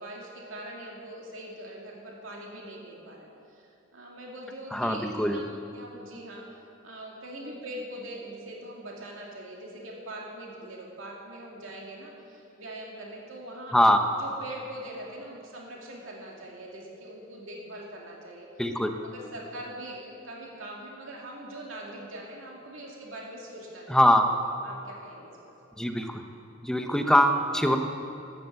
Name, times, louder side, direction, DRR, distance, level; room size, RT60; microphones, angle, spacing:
voice 1, 0.0-5.4 5.7-6.4 6.8-13.7 14.2-18.5 19.0-25.5 27.0-27.1, right 1 dB, 80° right, -2 dB, 2.3 m, -42 dB
voice 2, 4.7-5.4 13.7-14.0 18.6-18.9 23.9-24.3 25.8-26.2 26.6-27.8, equal, 5° left, 5 dB, 0.7 m, -22 dB
13.0 x 10.5 x 7.8 m, 2.7 s
head